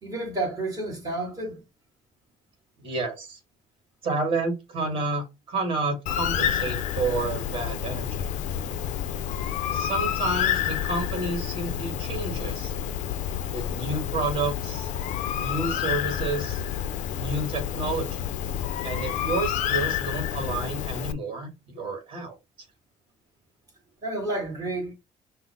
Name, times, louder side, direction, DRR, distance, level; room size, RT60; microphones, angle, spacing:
voice 1, 0.0-1.6 24.0-24.9, right 2 dB, 25° right, 1.8 m, -30 dB
voice 2, 2.8-3.4 4.0-8.3 9.7-12.7 13.5-14.9 15.4-16.6 17.2-18.2 18.8-22.4, right 3 dB, 40° right, 1.8 m, -30 dB
Bird, 6.1-21.1, left 10 dB, 65° left, 0.4 m, -29 dB
5.6 x 2.0 x 3.4 m
cardioid pair, 150°, 13 cm